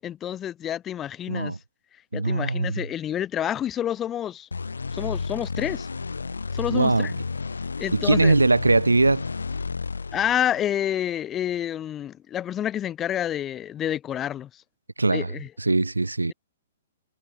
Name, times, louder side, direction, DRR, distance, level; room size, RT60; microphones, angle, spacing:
voice 1, 0.0-1.5 2.1-4.5 4.9-5.9 6.5-7.1 7.8-8.4 10.1-14.5 15.1-15.5, left 10 dB, 20° left, 7.1 m, -28 dB
voice 2, 1.3-1.6 2.1-2.8 6.7-7.1 7.9-9.2 15.0-15.3 15.6-16.3, right 3 dB, 80° right, 1.7 m, -21 dB
sound 1, 4.5-11.0, left 4 dB, 75° left, 2.3 m, -32 dB
figure-of-eight pair, 115°, 0 cm